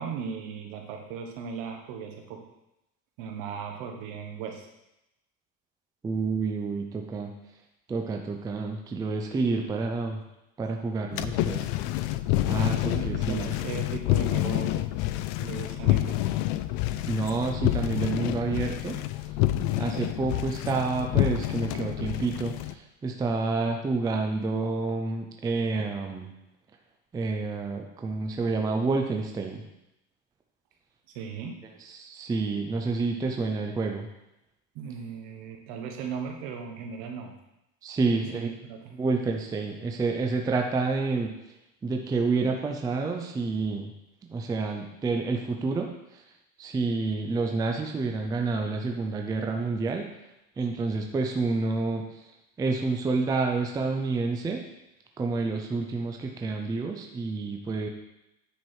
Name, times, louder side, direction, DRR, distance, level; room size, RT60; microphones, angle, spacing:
voice 1, 0.0-2.4 3.2-4.7 12.9-14.9 15.4-16.4 31.1-31.6 34.7-37.3 38.1-38.9, right 6 dB, 60° right, 3 dB, 1.5 m, -37 dB
voice 2, 6.0-7.3 7.9-10.2 10.6-11.9 12.5-13.5 17.0-19.0 19.8-26.3 27.1-29.6 31.8-34.1 37.8-38.5 38.9-41.3 41.8-43.9 44.3-46.2 46.6-50.1 50.6-52.2 52.6-54.6 55.2-57.9, right 3 dB, 10° right, 3 dB, 0.4 m, -29 dB
sound 1, 11.1-22.7, left 15 dB, 55° left, 0.5 m, -28 dB
9.5 x 4.8 x 4.5 m, 0.89 s
cardioid pair, 150°, 38 cm